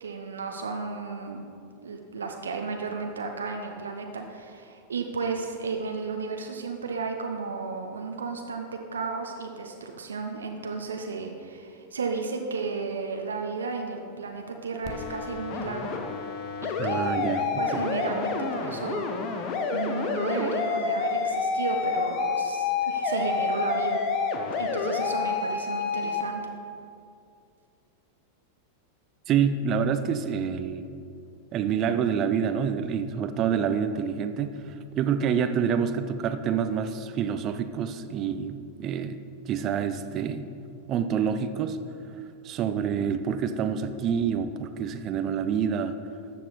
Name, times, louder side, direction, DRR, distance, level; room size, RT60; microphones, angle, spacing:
voice 1, 0.0-1.4 1.8-16.0 16.6-17.2 17.6-19.3 19.7-24.0 24.6-26.4, right 4 dB, 70° right, 3 dB, 0.8 m, -33 dB
sound 1, 14.8-26.2, left 5 dB, 40° left, 1.0 m, -28 dB
voice 2, 16.8-17.8 29.3-30.9 31.5-34.6 35.0-40.5 40.9-41.8 42.4-45.9, right 7 dB, 35° right, 10 dB, 0.6 m, -27 dB
13.5 x 7.5 x 4.2 m, 2.5 s
figure-of-eight pair, 90°, 0 cm